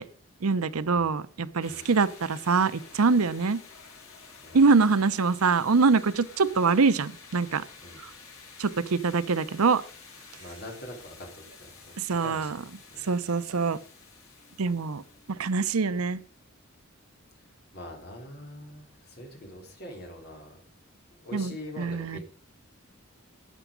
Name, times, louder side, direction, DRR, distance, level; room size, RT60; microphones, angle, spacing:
voice 1, 0.4-3.6 4.5-7.6 8.0-8.1 8.6-9.8 12.0-12.6 13.0-13.8 14.6-15.0 15.3-16.2 21.3-22.2, right 4 dB, 90° right, 15 dB, 0.7 m, -24 dB
sound 1, 1.6-16.4, left 5 dB, 80° left, 4.9 m, -51 dB
voice 2, 4.4-4.9 7.8-8.0 10.3-11.9 12.2-12.6 12.9-13.1 17.4-17.5 17.7-20.6 21.2-22.2, left 1 dB, 45° left, 2 dB, 3.6 m, -43 dB
12.0 x 8.3 x 5.0 m, 0.42 s
head